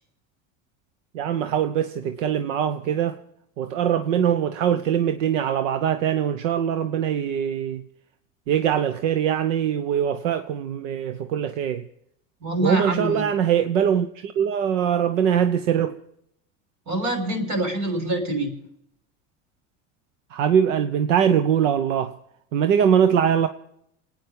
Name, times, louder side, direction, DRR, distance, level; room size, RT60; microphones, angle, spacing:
voice 1, 1.1-3.2 3.6-7.8 8.5-11.8 12.6-16.0 20.3-22.1 22.5-23.5, right 8 dB, 90° right, 0.9 m, -22 dB
voice 2, 12.4-13.3 16.9-18.6, right 1 dB, 55° right, 6.1 m, -25 dB
27.0 x 9.5 x 5.3 m
supercardioid pair, 100°, 37 cm